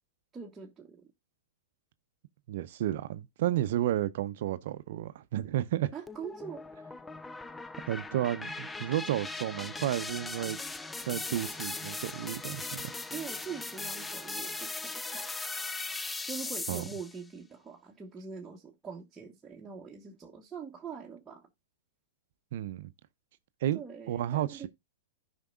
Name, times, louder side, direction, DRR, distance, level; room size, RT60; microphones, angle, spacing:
voice 1, 0.3-1.1 5.9-6.7 13.1-15.3 16.2-21.5 23.7-24.7, right 6 dB, 15° right, 1.2 m, -43 dB
voice 2, 2.5-5.9 7.9-10.6 11.1-12.9 16.7-16.8 22.5-22.9 23.6-23.8 24.1-24.7, right 13 dB, 60° right, 0.6 m, -32 dB
sound 1, 6.1-17.2, left 3 dB, 10° left, 0.4 m, -39 dB
15.0 x 5.2 x 2.4 m
hypercardioid pair, 110°, 0 cm